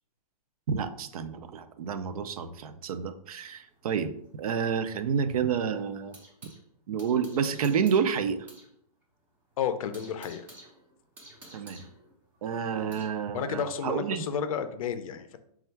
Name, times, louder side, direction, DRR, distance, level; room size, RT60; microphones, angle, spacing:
voice 1, 0.7-4.1 4.4-6.1 6.9-8.5 11.5-11.8 12.4-14.2, right 7 dB, 65° right, 10 dB, 0.5 m, -29 dB
sound 1, 3.4-6.6 7.0-8.7 9.0-9.1 9.5-13.2, right 1 dB, 10° right, 0.5 m, -52 dB
voice 2, 9.6-10.4 13.3-15.4, left 7 dB, 60° left, 10 dB, 0.5 m, -31 dB
3.4 x 2.3 x 4.4 m, 0.70 s
hypercardioid pair, 170°, 20 cm